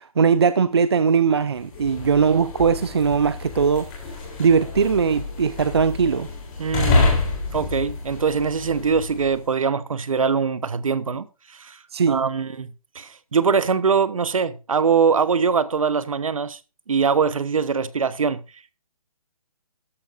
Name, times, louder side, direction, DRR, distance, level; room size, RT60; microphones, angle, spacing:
voice 1, 0.0-3.9 4.4-6.3 11.9-12.3, right 6 dB, 45° right, 0.5 m, -20 dB
sound 1, 1.6-9.4, left 3 dB, 15° left, 3.4 m, -27 dB
voice 2, 6.6-7.1 7.5-11.3 11.5-11.8 12.1-16.6 16.9-18.4, right 5 dB, 65° right, 1.1 m, -22 dB
13.0 x 12.0 x 2.6 m
hypercardioid pair, 175°, 19 cm